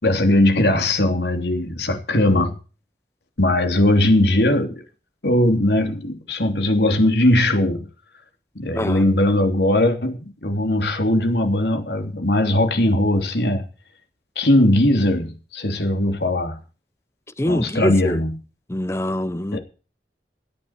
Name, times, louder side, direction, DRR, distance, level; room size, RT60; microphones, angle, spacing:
voice 1, 0.0-2.5 3.4-4.8 5.2-7.9 8.5-13.6 14.3-16.6 17.5-18.4 19.5-19.6, left 1 dB, 70° left, 3.2 m, -19 dB
voice 2, 17.4-18.2 18.7-19.6, left 1 dB, 15° left, 0.6 m, -24 dB
17.0 x 11.0 x 4.5 m
head